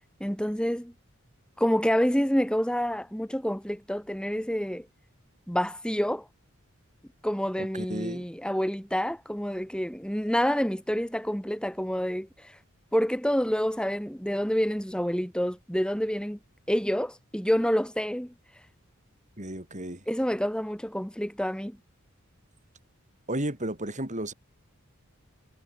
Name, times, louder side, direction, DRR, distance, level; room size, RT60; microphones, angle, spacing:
voice 1, 0.2-0.9 1.6-4.9 5.5-6.3 7.2-12.6 12.9-16.4 16.7-18.3 20.1-21.8, equal, 5° left, 5.2 m, -28 dB
voice 2, 7.6-8.3 19.4-20.0 23.3-24.3, right 1 dB, 35° right, 7.9 m, -33 dB
head